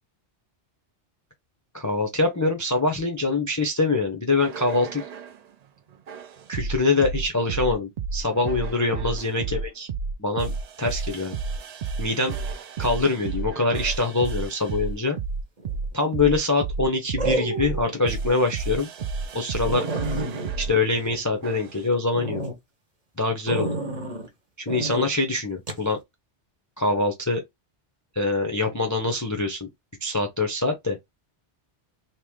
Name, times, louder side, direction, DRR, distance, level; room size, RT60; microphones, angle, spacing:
voice 1, 1.7-5.0 6.5-9.9 10.2-10.5 10.8-11.4 12.0-12.3 12.8-15.2 15.9-18.9 19.3-19.9 20.6-22.4 23.2-23.8 24.7-26.0 26.8-27.4 28.2-29.7 30.0-31.0, left 3 dB, 25° left, 0.4 m, -24 dB
sound 1, 4.4-5.4 6.1-20.7 21.4-21.8, right 4 dB, 65° right, 0.4 m, -31 dB
sound 2, 15.6-16.0 17.2-17.9 18.4-18.5 19.0-19.1 19.3-19.4 19.7-21.7 22.1-22.6 23.5-24.3 24.7-25.1 25.7-25.9, right 2 dB, 35° right, 1.0 m, -30 dB
3.0 x 2.8 x 3.5 m
omnidirectional pair, 1.2 m